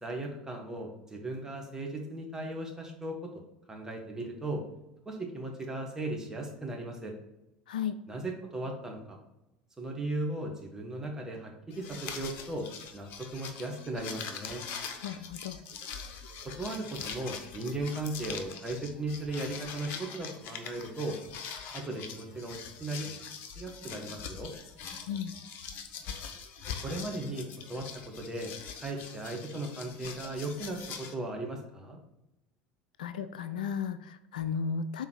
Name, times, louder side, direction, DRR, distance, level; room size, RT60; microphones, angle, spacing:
voice 1, 0.0-3.2 3.7-4.6 5.0-7.1 8.1-9.2 9.8-12.7 12.9-14.6 16.4-21.2 21.7-23.1 23.6-24.5 26.8-28.5 28.8-32.0, right 2 dB, 15° right, 1 dB, 1.5 m, -37 dB
voice 2, 7.7-8.0 15.0-15.6 25.1-25.3 33.0-35.1, left 6 dB, 70° left, 12 dB, 0.3 m, -34 dB
sound 1, 11.7-31.1, left 6 dB, 50° left, 0.7 m, -43 dB
5.3 x 3.9 x 4.7 m, 0.92 s
figure-of-eight pair, 70°, 5 cm